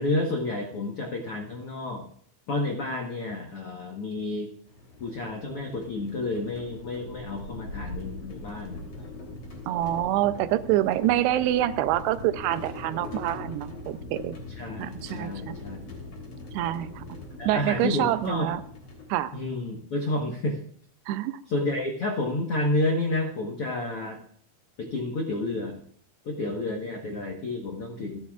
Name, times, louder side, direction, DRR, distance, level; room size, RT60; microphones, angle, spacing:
voice 1, 0.0-2.1 2.5-4.5 5.0-9.0 14.6-15.8 17.4-18.5 19.3-20.6 21.5-24.2 24.8-25.8 26.2-28.2, left 2 dB, 80° left, 1 dB, 1.2 m, -30 dB
sound 1, 4.7-19.7, left 2 dB, 40° left, 3.6 m, -41 dB
voice 2, 9.7-14.4 14.8-15.6 16.5-17.0 17.5-18.6 19.1-19.3 21.1-21.4, right 13 dB, 85° right, 13 dB, 2.7 m, -26 dB
27.0 x 9.7 x 2.4 m, 0.62 s
omnidirectional pair, 4.7 m